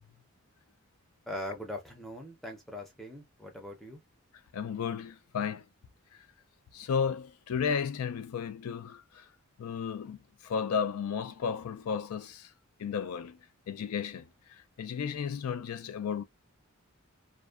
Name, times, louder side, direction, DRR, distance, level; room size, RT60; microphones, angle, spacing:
voice 1, 1.3-4.0, left 1 dB, ahead, 0.5 m, -41 dB
voice 2, 4.5-5.6 6.7-9.3 9.6-12.5 12.8-13.4 13.7-14.3 14.8-16.2, left 6 dB, 85° left, 0.4 m, -33 dB
2.5 x 2.1 x 2.3 m
head